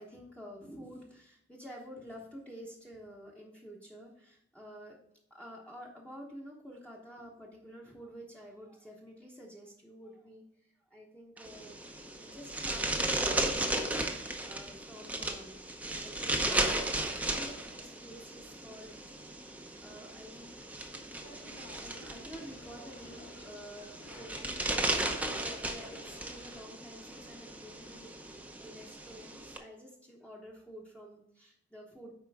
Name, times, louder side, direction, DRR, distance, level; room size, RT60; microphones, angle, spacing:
voice 1, 0.0-5.0 5.3-10.4 10.9-15.6 16.0-19.2 19.8-20.7 21.3-28.1 28.6-32.1, equal, 5° left, -3 dB, 1.0 m, -50 dB
sound 1, 11.4-29.6, right 2 dB, 10° right, 0.6 m, -36 dB
sound 2, 21.2-26.6, left 2 dB, 65° left, 1.4 m, -54 dB
8.1 x 5.0 x 3.5 m, 0.73 s
head